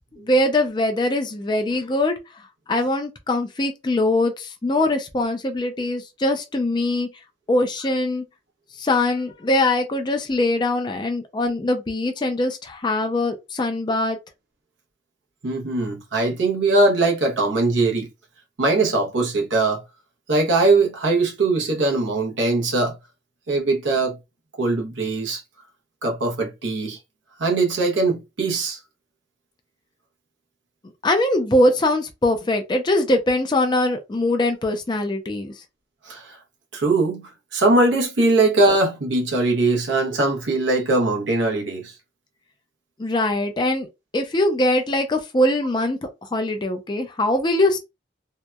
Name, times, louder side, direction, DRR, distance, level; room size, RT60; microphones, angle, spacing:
voice 1, 0.2-2.2 2.7-7.1 7.5-8.2 8.8-14.2 31.0-35.5 43.0-43.9 44.1-47.8, left 1 dB, 25° left, 0.4 m, -22 dB
voice 2, 15.4-18.1 18.6-19.8 20.3-23.0 23.5-24.2 24.6-25.4 26.0-27.0 27.4-28.8 36.0-36.4 36.7-41.9, right 2 dB, 90° right, 0.8 m, -21 dB
2.8 x 2.1 x 2.2 m
head